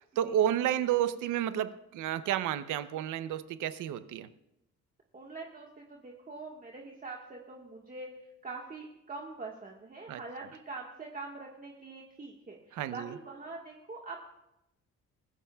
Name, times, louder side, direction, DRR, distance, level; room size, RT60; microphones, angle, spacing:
voice 1, 0.2-4.3 10.1-10.2 12.7-13.1, right 11 dB, 85° right, 13 dB, 0.8 m, -31 dB
voice 2, 5.1-8.1 8.4-14.2, right 3 dB, 30° right, -1 dB, 1.6 m, -44 dB
24.5 x 14.5 x 2.4 m, 0.87 s
cardioid pair, 90°, 30 cm